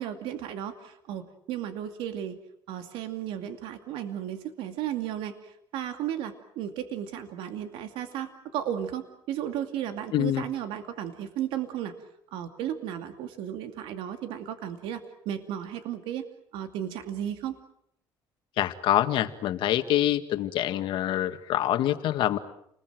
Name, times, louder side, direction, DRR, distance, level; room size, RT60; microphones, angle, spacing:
voice 1, 0.0-2.4 2.7-12.0 12.3-16.3 16.5-17.6, right 10 dB, 85° right, 7 dB, 2.5 m, -34 dB
voice 2, 10.1-10.4 18.6-22.4, left 12 dB, 70° left, 8 dB, 2.0 m, -25 dB
30.0 x 21.0 x 7.9 m, 0.72 s
cardioid pair, 110°, 9 cm